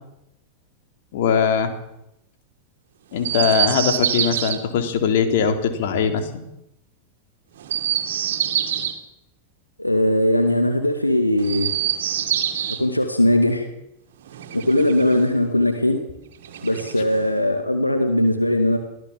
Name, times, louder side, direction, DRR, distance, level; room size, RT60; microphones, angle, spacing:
voice 1, 1.1-1.7 3.1-6.4, left 7 dB, 55° left, 7 dB, 3.5 m, -21 dB
Chirp tweet, 3.2-4.6 7.6-9.0 11.4-12.8 14.2-15.3 16.4-17.3, right 10 dB, 60° right, 2.5 m, -25 dB
voice 2, 9.8-11.7 12.8-13.7 14.5-16.0 16.6-18.8, left 1 dB, 85° left, 6 dB, 2.2 m, -19 dB
24.0 x 16.5 x 7.5 m, 0.84 s
figure-of-eight pair, 90°, 0 cm